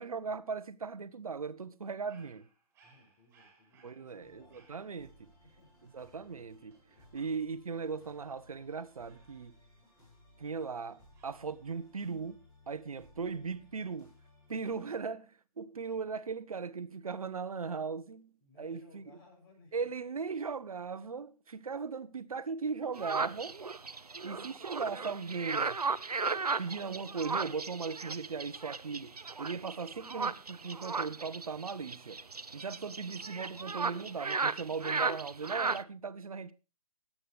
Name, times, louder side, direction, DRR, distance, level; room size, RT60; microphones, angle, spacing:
voice 1, 0.0-2.5 3.8-5.3 5.8-6.8 7.1-9.6 10.4-14.1 14.5-15.2 15.6-19.0 19.7-23.5 24.2-25.8 26.6-32.2 32.5-36.5, right 5 dB, 70° right, 1.2 m, -38 dB
Dog, 2.1-7.7 9.0-10.5 11.1-11.8, right 4 dB, 15° right, 4.6 m, -68 dB
voice 2, 2.8-4.7 5.4-5.9 13.7-14.0 14.8-14.9 15.8-16.0 16.3-16.4 18.4-19.9, left 2 dB, 35° left, 7.0 m, -61 dB
sound 1, 4.2-14.8, left 1 dB, 15° left, 6.8 m, -62 dB
sound 2, 22.9-35.8, right 4 dB, 90° right, 0.8 m, -36 dB
21.5 x 8.9 x 3.4 m
figure-of-eight pair, 140°, 19 cm